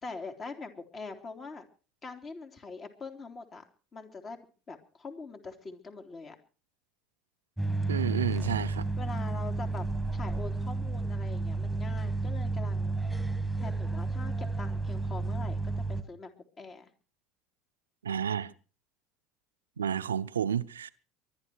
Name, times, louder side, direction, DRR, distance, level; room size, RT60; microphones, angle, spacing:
voice 1, 0.0-1.6 2.0-3.6 3.9-4.4 4.7-6.4 9.0-9.9 10.1-13.0 13.6-16.3 16.6-16.9, left 4 dB, 35° left, 3.5 m, -43 dB
sound 1, 7.6-16.0, right 3 dB, ahead, 2.0 m, -31 dB
voice 2, 7.9-8.9 18.0-18.5 19.8-20.9, right 8 dB, 85° right, 0.7 m, -31 dB
23.5 x 11.0 x 4.7 m
hypercardioid pair, 70°, 0 cm